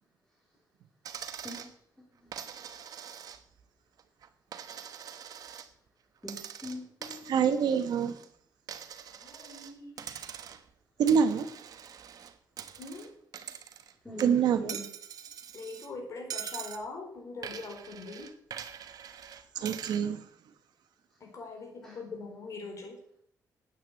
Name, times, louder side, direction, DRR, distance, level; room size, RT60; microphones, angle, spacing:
Coin (dropping), 1.0-1.7 2.3-3.6 4.0-5.7 6.2-8.3 8.7-9.7 10.0-10.7 11.1-13.9 14.2-15.9 16.3-16.8 17.4-20.0, right 8 dB, 60° right, 1.1 m, -43 dB
voice 1, 6.2-7.3 14.0-14.8 21.8-22.0, left 1 dB, 5° left, 2.9 m, -42 dB
voice 2, 7.3-8.1 11.0-11.5 14.2-14.8 19.6-20.2, right 7 dB, 80° right, 1.3 m, -25 dB
voice 3, 9.1-9.9 12.8-13.1 15.5-18.3 21.2-23.0, left 3 dB, 50° left, 4.2 m, -42 dB
9.5 x 8.9 x 8.3 m
cardioid pair, 130°, 7 cm